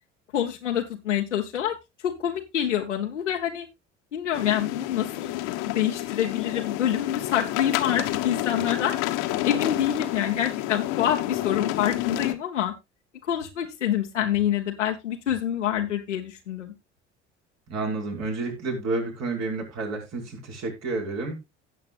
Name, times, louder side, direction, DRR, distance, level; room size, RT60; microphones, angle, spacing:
voice 1, 0.3-1.8 2.0-3.7 4.1-5.3 5.6-8.9 9.4-12.7 13.3-16.7, left 10 dB, 85° left, 2 dB, 1.0 m, -26 dB
sound 1, 4.3-12.3, left 15 dB, 65° left, 1.2 m, -29 dB
voice 2, 17.7-21.4, right 3 dB, 50° right, 1 dB, 5.2 m, -30 dB
16.5 x 7.7 x 2.4 m, 0.22 s
figure-of-eight pair, 60°, 35 cm